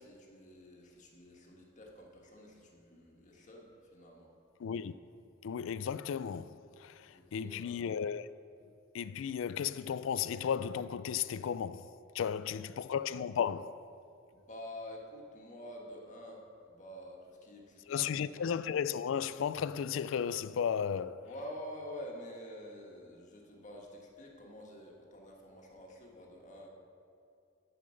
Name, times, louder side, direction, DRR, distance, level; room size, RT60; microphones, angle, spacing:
voice 1, 0.0-4.3 7.1-7.7 14.3-18.4 21.2-26.7, left 1 dB, 40° left, 1.6 m, -48 dB
voice 2, 4.6-4.9 5.4-8.3 8.9-13.8 17.9-21.3, left 7 dB, 70° left, 0.3 m, -34 dB
11.0 x 5.7 x 6.5 m
head